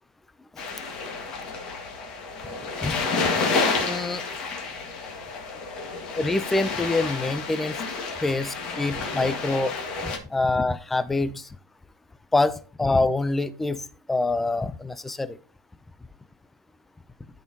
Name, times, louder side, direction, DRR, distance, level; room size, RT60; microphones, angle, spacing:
sound 1, 0.6-10.2, left 4 dB, 30° left, 1.6 m, -30 dB
voice 1, 3.8-4.2 6.2-7.8 8.2-9.8 10.0-11.5 12.3-15.4, left 2 dB, 5° left, 0.4 m, -25 dB
13.0 x 4.3 x 2.8 m
supercardioid pair, 145°, 3 cm